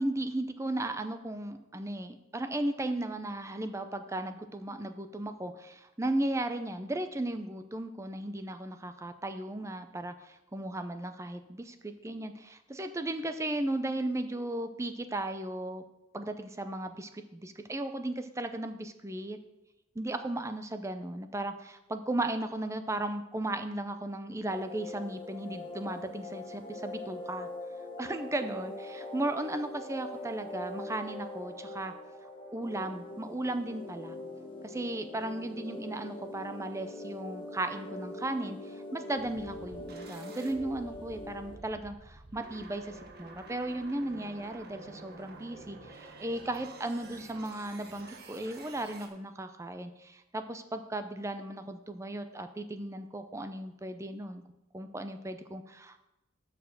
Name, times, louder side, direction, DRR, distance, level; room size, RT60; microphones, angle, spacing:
voice 1, 0.0-15.8 16.1-19.4 20.0-27.5 28.0-31.9 32.5-34.2 34.6-54.4 54.7-56.0, right 1 dB, 15° right, 9 dB, 0.5 m, -36 dB
sound 1, 24.5-41.6, left 1 dB, 25° left, 1.1 m, -43 dB
sound 2, 39.2-49.1, right 3 dB, 50° right, 1.1 m, -50 dB
6.6 x 6.5 x 6.8 m, 0.94 s
head